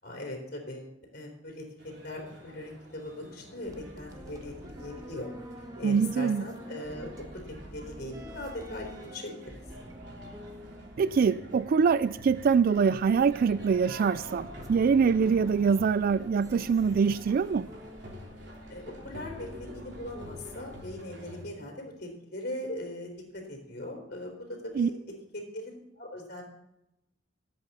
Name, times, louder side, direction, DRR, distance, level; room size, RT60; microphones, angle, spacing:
voice 1, 0.0-1.6 2.0-5.3 5.8-9.6 18.7-24.3 24.6-25.0 25.3-26.4, left 1 dB, 55° left, -1 dB, 3.4 m, -40 dB
sound 1, 1.8-21.5, equal, 65° right, 3.3 m, -48 dB
sound 2, 3.6-20.9, equal, 20° right, 1.2 m, -47 dB
voice 2, 5.8-6.4 11.0-17.7 24.8-24.9, right 6 dB, 50° right, 15 dB, 0.3 m, -24 dB
18.0 x 8.3 x 4.2 m, 0.88 s
head